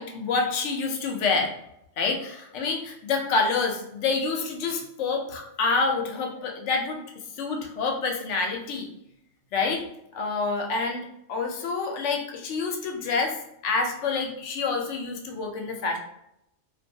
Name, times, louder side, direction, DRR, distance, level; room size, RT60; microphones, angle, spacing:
voice 1, 0.0-1.5 2.0-7.0 7.4-8.9 9.5-9.8 10.1-11.0 11.3-13.4 13.6-16.0, left 4 dB, 75° left, 2 dB, 0.9 m, -27 dB
2.3 x 2.2 x 2.6 m, 0.78 s
omnidirectional pair, 1.3 m